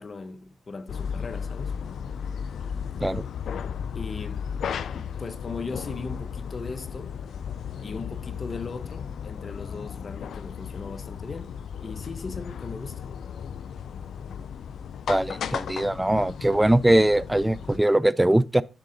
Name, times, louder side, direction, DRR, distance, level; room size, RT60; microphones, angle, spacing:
voice 1, 0.0-1.7 3.9-4.4 4.9-7.1 7.8-11.5 11.8-13.1, left 4 dB, 45° left, 0.8 m, -38 dB
sound 1, 0.9-17.8, left 7 dB, 80° left, 0.4 m, -35 dB
voice 2, 15.1-18.6, right 1 dB, 10° right, 0.4 m, -21 dB
10.5 x 3.8 x 3.8 m
cardioid pair, 65°, 0 cm